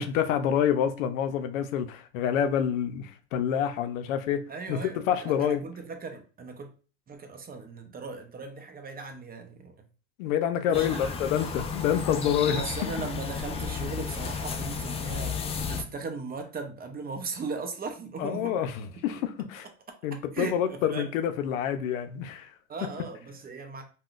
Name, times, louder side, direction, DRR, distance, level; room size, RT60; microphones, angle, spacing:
voice 1, 0.0-5.6 10.2-12.6 18.2-19.7 20.0-22.5, left 9 dB, 85° left, 0.5 m, -27 dB
voice 2, 4.5-6.7 7.1-9.7 10.7-11.1 12.5-18.7 20.1-21.1 22.7-23.8, right 4 dB, 25° right, 0.6 m, -38 dB
sound 1, 10.7-15.8, left 5 dB, 15° left, 0.3 m, -33 dB
3.6 x 2.2 x 2.4 m
supercardioid pair, 100°, 39 cm